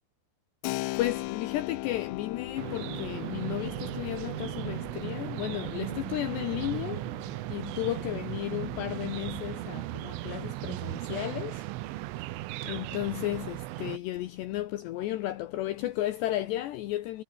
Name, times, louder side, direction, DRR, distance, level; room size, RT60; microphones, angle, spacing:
Keyboard (musical), 0.6-9.0, left 21 dB, 90° left, 3.4 m, -40 dB
voice 1, 0.9-11.7 12.2-12.3 12.6-17.2, left 14 dB, 75° left, 2.8 m, -34 dB
sound 1, 1.6-10.0, left 6 dB, 40° left, 2.7 m, -52 dB
sound 2, 2.6-14.0, right 17 dB, 80° right, 3.5 m, -37 dB
omnidirectional pair, 5.8 m